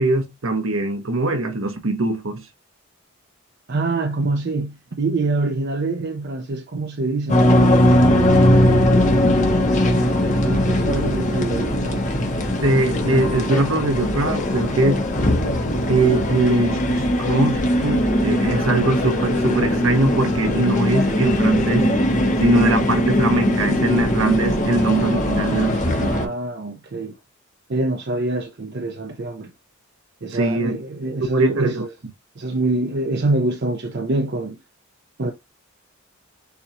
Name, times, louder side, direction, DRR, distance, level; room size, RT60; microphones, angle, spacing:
voice 1, 0.0-2.4 12.6-15.0 15.9-21.9 22.4-26.3 30.3-30.7 31.2-31.8, right 2 dB, 65° right, 1.0 m, -21 dB
voice 2, 3.7-8.6 10.4-12.1 25.9-27.2 27.7-29.5 30.2-31.9 32.4-34.6 35.2-35.3, right 2 dB, 50° right, 0.6 m, -25 dB
sound 1, 7.3-26.3, left 1 dB, 35° left, 0.9 m, -19 dB
6.9 x 2.4 x 2.9 m
head